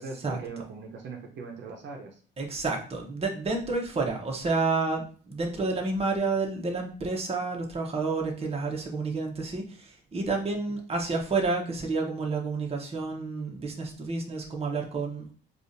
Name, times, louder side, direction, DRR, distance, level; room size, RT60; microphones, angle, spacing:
voice 1, 0.0-2.2, right 4 dB, 65° right, 1 dB, 0.8 m, -40 dB
voice 2, 2.4-15.3, right 3 dB, 30° right, 1 dB, 1.0 m, -30 dB
4.8 x 2.4 x 2.6 m, 0.40 s
cardioid pair, 90°, 20 cm